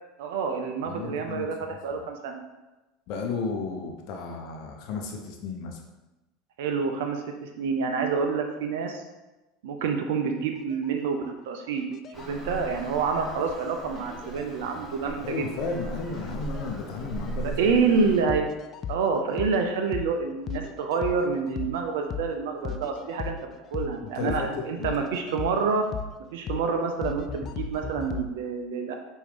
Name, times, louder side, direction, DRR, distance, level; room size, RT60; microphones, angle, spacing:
voice 1, 0.2-2.4 6.6-9.0 9.6-11.8 12.2-15.4 17.4-18.5 18.9-23.4 23.7-25.9 26.3-28.9, right 5 dB, 70° right, 4 dB, 0.4 m, -27 dB
voice 2, 0.8-1.8 3.1-5.8 15.2-17.6 24.1-24.9, left 4 dB, 60° left, 3 dB, 0.7 m, -33 dB
sound 1, 10.6-10.9 11.8-13.0 14.0-14.9 15.2-15.3 16.1-16.6 17.1-17.2 18.3-19.6 19.9-20.1 20.5-21.8 22.1-22.3 22.6-24.0 24.3-24.5 24.8-26.2 26.5-26.7 27.0-28.3, left 6 dB, 40° left, 0.3 m, -36 dB
Traffic noise roadway noise, 12.1-18.2, right 1 dB, 15° left, 1.4 m, -39 dB
4.7 x 2.6 x 3.4 m, 1.1 s
hypercardioid pair, 80°, 0 cm